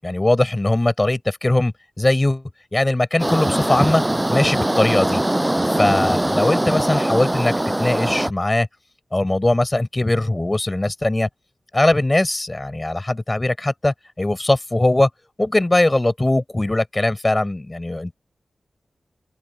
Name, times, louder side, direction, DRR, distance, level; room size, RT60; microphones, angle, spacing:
voice 1, 0.0-2.4 2.7-4.0 4.3-5.2 5.7-8.7 9.1-11.3 11.7-15.1 15.4-18.1, left 2 dB, 20° left, 6.4 m, -20 dB
sound 1, 3.2-8.3, right 1 dB, 15° right, 6.8 m, -21 dB
open air
wide cardioid pair, 110°, 0 cm